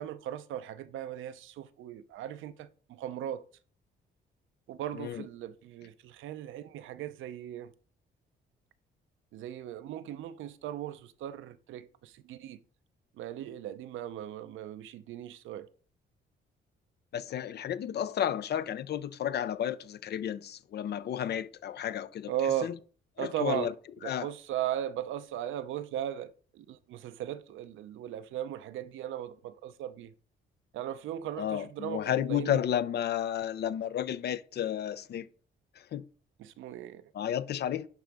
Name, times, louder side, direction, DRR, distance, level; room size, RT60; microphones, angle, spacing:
voice 1, 0.0-3.4 4.7-7.7 9.3-12.6 13.2-15.7 22.3-22.7 23.2-23.7 24.0-30.1 30.7-32.6 36.4-37.0, right 11 dB, 80° right, 0.6 m, -37 dB
voice 2, 17.1-22.3 22.6-22.7 23.2-23.7 24.0-24.3 31.4-35.3 35.9-36.1 37.1-37.9, left 10 dB, 55° left, 0.5 m, -32 dB
11.0 x 3.9 x 3.5 m
cardioid pair, 90°, 20 cm